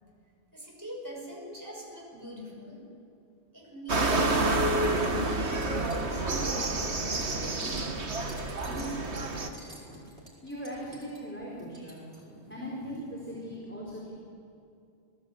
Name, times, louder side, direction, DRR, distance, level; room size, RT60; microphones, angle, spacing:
voice 1, 0.2-2.9 3.5-8.3 8.6-9.6 11.1-11.2 12.9-13.0, equal, 15° right, -1 dB, 5.4 m, -42 dB
sound 1, 3.9-9.5, right 2 dB, 85° right, 2.1 m, -29 dB
sound 2, 4.6-13.6, equal, 60° right, 5.4 m, -50 dB
voice 2, 10.4-12.0 12.5-14.1, equal, 10° left, -4 dB, 4.5 m, -39 dB
26.5 x 19.5 x 8.5 m, 2.5 s
omnidirectional pair, 1.1 m